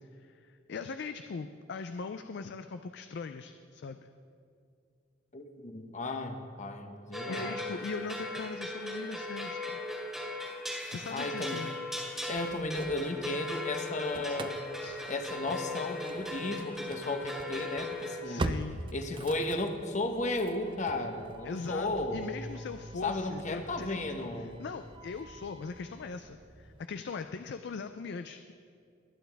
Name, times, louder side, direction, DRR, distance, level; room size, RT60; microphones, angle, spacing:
voice 1, 0.2-4.1 7.3-9.8 10.9-11.7 14.8-15.0 18.2-18.8 21.4-24.0 24.4-28.5, left 4 dB, 60° left, 9 dB, 0.4 m, -40 dB
voice 2, 5.3-7.6 11.1-11.6 12.3-14.6 15.1-18.5 18.9-22.3 23.0-24.6, left 2 dB, 40° left, 6 dB, 1.0 m, -34 dB
sound 1, 7.1-18.2, left 1 dB, ahead, 2.0 m, -38 dB
Engine starting / Slam, 12.1-13.5 13.8-26.9, right 2 dB, 25° right, 0.4 m, -44 dB
23.0 x 9.3 x 3.5 m, 2.4 s
head